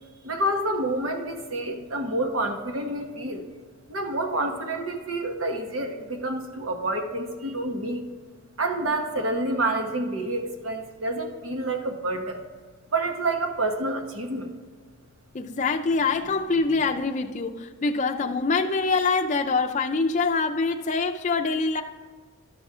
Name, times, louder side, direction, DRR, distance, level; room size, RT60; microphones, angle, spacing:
voice 1, 0.2-3.5 3.9-8.0 8.6-12.4 12.9-14.5, right 2 dB, 80° right, 4 dB, 1.1 m, -28 dB
voice 2, 15.3-21.8, left 4 dB, 35° left, 4 dB, 0.4 m, -25 dB
12.0 x 6.1 x 3.6 m, 1.5 s
head